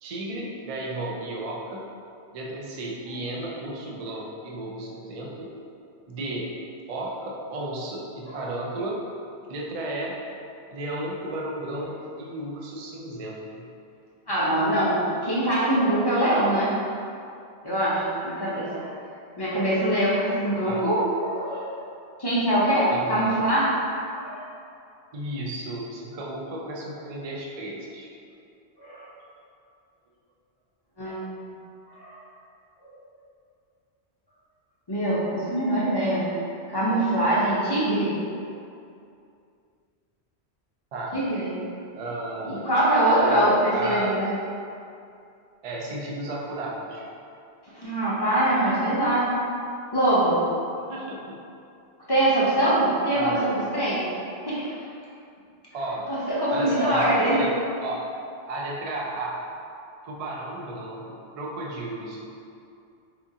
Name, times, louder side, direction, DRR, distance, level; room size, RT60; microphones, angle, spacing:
voice 1, 0.0-1.8 2.3-5.5 6.1-6.5 6.9-9.0 9.5-10.2 10.7-13.6 20.6-20.9 22.9-23.4 25.1-28.1 40.9-41.2 41.9-42.6 43.2-43.5 43.7-44.1 45.6-47.1 50.9-51.4 53.1-53.5 55.7-56.1 56.5-57.5 57.8-58.0 58.4-59.4 60.0-62.3, right 2 dB, 50° right, -3 dB, 0.4 m, -33 dB
voice 2, 14.3-16.7 17.6-18.9 19.4-21.7 22.2-23.7 24.2-24.5 28.8-29.1 31.0-31.2 32.0-32.2 32.8-32.9 34.9-36.3 36.7-38.2 41.1-41.5 42.4-44.3 47.7-49.3 49.9-50.4 52.1-54.0 54.4-54.8 56.1-57.4, right 1 dB, 30° left, -9 dB, 0.6 m, -23 dB
4.2 x 2.4 x 2.7 m, 2.5 s
omnidirectional pair, 1.1 m